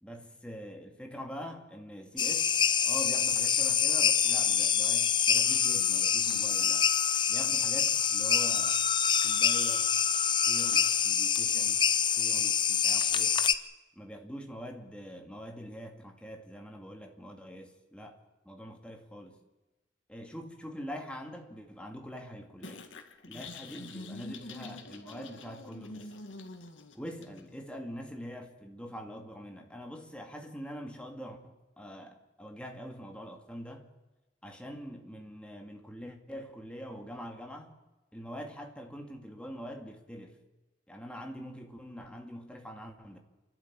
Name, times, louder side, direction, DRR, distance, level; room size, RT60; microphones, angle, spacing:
voice 1, 0.0-2.6 2.9-6.9 7.3-8.8 9.2-9.9 10.4-11.9 12.2-13.4 14.0-19.4 20.1-22.9 23.2-26.1 26.9-33.9 34.4-37.8 38.1-40.4 40.9-43.2, equal, 5° left, 2 dB, 2.2 m, -44 dB
sound 1, 2.2-13.5, left 7 dB, 25° left, 0.6 m, -26 dB
sound 2, 22.6-27.6, left 2 dB, 85° left, 1.9 m, -46 dB
29.5 x 12.0 x 8.8 m, 1.1 s
head